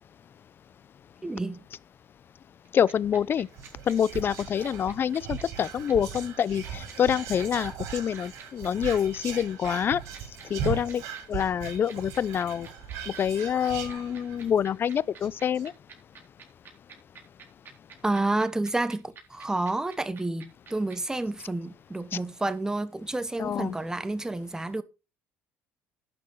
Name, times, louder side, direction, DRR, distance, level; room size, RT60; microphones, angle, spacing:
voice 1, 1.2-1.6 18.0-24.8, right 2 dB, 10° right, 1.2 m, -30 dB
voice 2, 2.7-3.5 3.9-10.0 10.5-11.0 11.3-12.7 13.1-15.7 22.1-22.2 23.4-23.8, left 8 dB, 45° left, 0.6 m, -26 dB
sound 1, 2.7-21.0, right 6 dB, 45° right, 4.2 m, -48 dB
Whispering, 3.5-14.6 14.9-15.0 15.2-15.6, right 8 dB, 75° right, 5.4 m, -38 dB
11.5 x 6.2 x 5.7 m
supercardioid pair, 95°, 5 cm